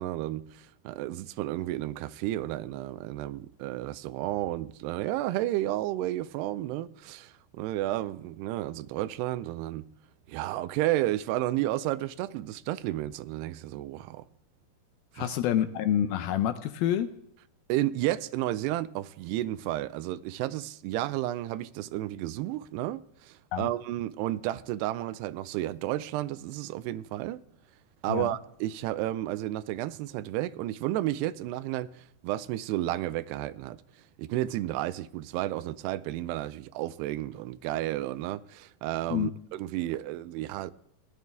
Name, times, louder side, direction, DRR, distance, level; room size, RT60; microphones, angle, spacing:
voice 1, 0.0-9.8 10.3-14.3 15.2-15.3 17.7-27.4 28.0-33.8 34.2-40.7, right 15 dB, 90° right, 2.7 m, -32 dB
voice 2, 15.2-17.1 23.5-23.7 28.1-28.4 39.1-39.3, left 10 dB, 80° left, 2.3 m, -27 dB
16.5 x 10.5 x 3.5 m
omnidirectional pair, 4.6 m